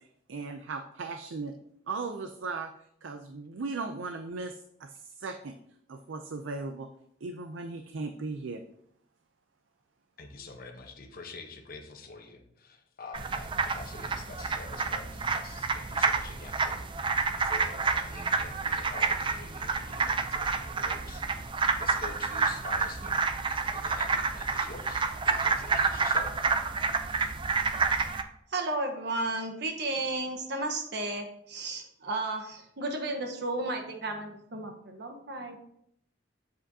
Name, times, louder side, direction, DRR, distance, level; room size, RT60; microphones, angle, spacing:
voice 1, 0.3-1.5 1.9-2.7 3.0-5.5 5.9-6.9 7.2-8.6, right 3 dB, 80° right, 7 dB, 0.5 m, -37 dB
voice 2, 10.2-21.5 21.8-26.4, left 3 dB, 50° left, 3 dB, 1.0 m, -46 dB
sound 1, 13.1-28.2, right 4 dB, 25° right, 0.4 m, -29 dB
voice 3, 28.5-35.8, right 2 dB, 60° right, 4 dB, 1.1 m, -33 dB
7.7 x 7.5 x 2.8 m, 0.73 s
head